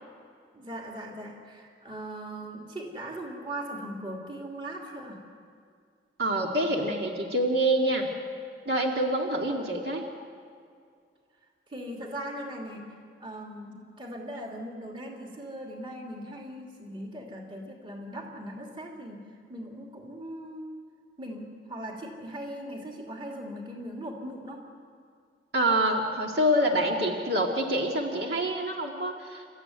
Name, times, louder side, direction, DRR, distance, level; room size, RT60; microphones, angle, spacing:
voice 1, 0.5-5.2 11.7-12.9 13.2-19.2 19.5-20.7 21.2-24.6, right 1 dB, 30° right, 0 dB, 2.9 m, -39 dB
voice 2, 6.2-8.1 8.7-10.1 25.5-29.5, right 1 dB, 65° right, 1 dB, 2.2 m, -26 dB
29.0 x 14.5 x 9.5 m, 2.2 s
head